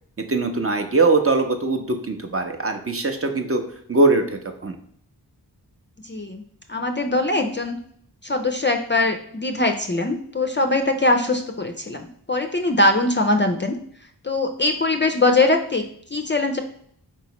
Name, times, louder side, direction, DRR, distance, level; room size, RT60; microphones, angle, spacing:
voice 1, 0.3-3.6 3.9-4.8, right 3 dB, 35° right, 4 dB, 0.7 m, -21 dB
voice 2, 6.1-6.4 6.7-7.8 8.2-13.8 14.2-15.8 16.1-16.6, left 2 dB, 30° left, 5 dB, 0.4 m, -21 dB
4.6 x 3.0 x 2.9 m, 0.64 s
cardioid pair, 45°, 40 cm